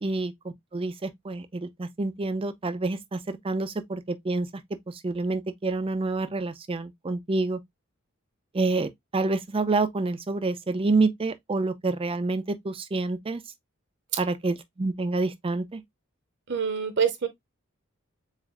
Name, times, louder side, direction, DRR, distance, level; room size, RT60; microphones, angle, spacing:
voice 1, 0.0-4.5 4.9-7.6 8.5-13.4 14.2-15.8, right 3 dB, 25° right, 0.4 m, -28 dB
voice 2, 16.5-17.3, right 7 dB, 55° right, 0.8 m, -25 dB
7.2 x 2.5 x 2.2 m
head